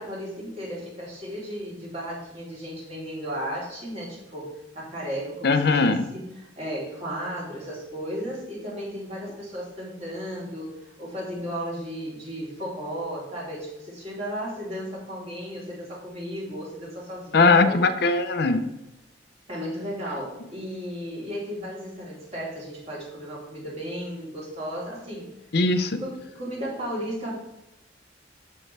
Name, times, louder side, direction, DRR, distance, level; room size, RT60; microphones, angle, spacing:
voice 1, 0.0-17.8 19.5-25.3 26.0-27.3, equal, 35° right, -5 dB, 3.3 m, -35 dB
voice 2, 5.4-6.0 17.3-18.7 25.5-26.0, left 3 dB, 60° left, 9 dB, 0.6 m, -20 dB
13.0 x 5.5 x 3.3 m, 0.91 s
head